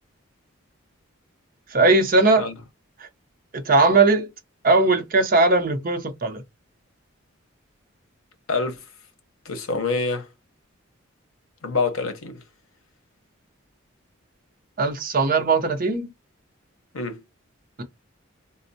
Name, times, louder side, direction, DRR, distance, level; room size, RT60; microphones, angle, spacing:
voice 1, 1.7-2.5 3.7-4.3 4.6-6.4 14.8-16.1 17.8-17.9, right 3 dB, 40° right, 0.6 m, -19 dB
voice 2, 8.5-8.8 9.5-10.3 11.6-12.4 16.9-17.2, left 4 dB, 80° left, 0.8 m, -26 dB
4.2 x 2.0 x 2.6 m
head